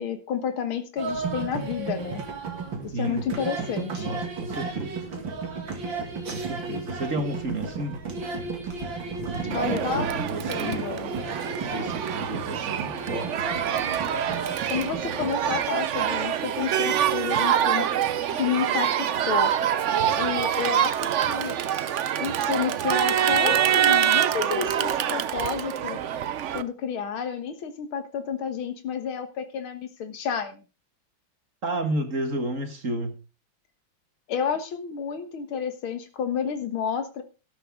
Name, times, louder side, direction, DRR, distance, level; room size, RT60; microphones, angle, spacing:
voice 1, 0.0-2.2 2.8-4.1 9.5-11.1 14.7-17.9 18.3-19.5 20.2-21.6 22.2-26.0 26.5-30.6 34.3-37.2, left 7 dB, 90° left, 8 dB, 2.2 m, -30 dB
sound 1, 1.0-15.6, right 4 dB, 65° right, 2.9 m, -33 dB
voice 2, 2.9-3.2 3.9-5.0 6.3-8.0 9.3-10.9 11.7-13.5 31.6-33.2, right 2 dB, 40° right, 6 dB, 2.0 m, -32 dB
Crowd, 9.5-26.6, right 10 dB, 85° right, 0.6 m, -25 dB
12.5 x 12.5 x 3.7 m, 0.31 s
omnidirectional pair, 2.2 m